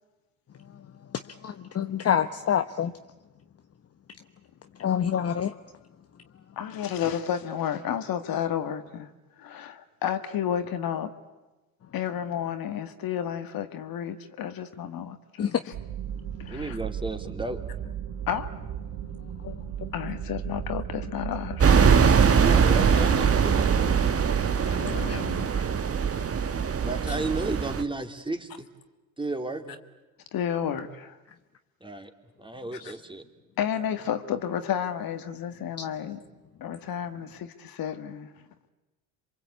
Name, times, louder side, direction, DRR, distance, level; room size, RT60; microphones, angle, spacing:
voice 1, 1.4-2.9 4.8-5.5 15.4-15.5 19.4-19.6 25.1-25.2 25.5-25.6 35.8-35.9, left 9 dB, 35° left, 1.0 m, -27 dB
voice 2, 6.6-9.1 9.4-11.1 11.9-15.7 16.4-16.8 18.3-18.6 19.9-22.4 24.7-25.5 30.3-31.2 33.6-36.2 36.6-38.3, left 9 dB, 60° left, 1.9 m, -31 dB
sound 1, 15.7-25.5, right 10 dB, 65° right, 1.6 m, -36 dB
voice 3, 16.5-17.6 22.4-23.7 26.8-28.7 29.2-29.8 31.8-32.1 32.4-33.3, right 2 dB, 10° right, 2.8 m, -33 dB
sound 2, 21.6-27.8, right 6 dB, 35° right, 1.5 m, -22 dB
27.5 x 23.5 x 8.4 m
hypercardioid pair, 65°, 40 cm